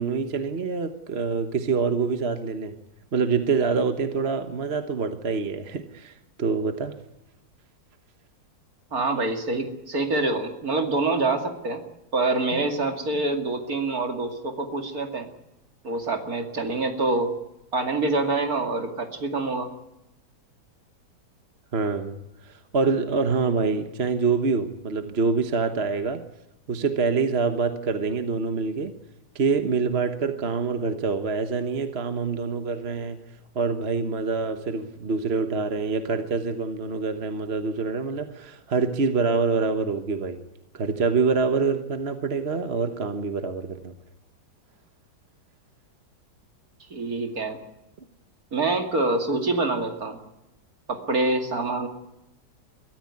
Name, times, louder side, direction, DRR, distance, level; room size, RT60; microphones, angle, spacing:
voice 1, 0.0-2.8 3.1-7.0 12.5-12.6 21.7-26.2 26.7-28.9 29.3-33.2 33.5-40.4 40.7-43.9, right 4 dB, 40° right, 8 dB, 1.3 m, -26 dB
voice 2, 8.9-11.8 12.1-15.3 15.8-17.4 17.7-19.7 46.9-47.6 48.5-50.2 50.9-51.9, right 2 dB, 55° right, 5 dB, 2.8 m, -26 dB
22.5 x 14.5 x 9.6 m, 0.90 s
omnidirectional pair, 1.9 m